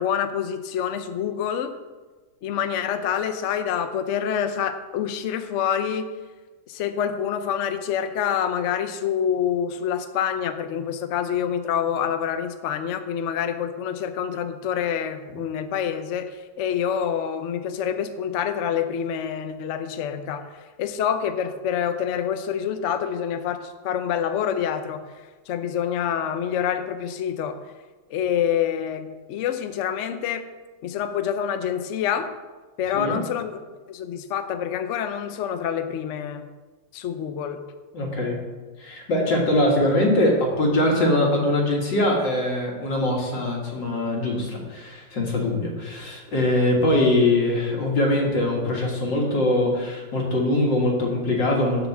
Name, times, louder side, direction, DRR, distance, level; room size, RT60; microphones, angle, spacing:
voice 1, 0.0-1.7 2.4-6.1 6.7-25.0 25.5-27.6 28.1-30.4 30.8-32.3 32.8-33.5 33.9-36.5 36.9-37.6, left 8 dB, 80° left, 8 dB, 0.6 m, -27 dB
voice 2, 37.9-38.4 38.8-51.9, left 1 dB, 65° left, -1 dB, 2.5 m, -22 dB
7.0 x 6.1 x 7.1 m, 1.3 s
omnidirectional pair, 2.1 m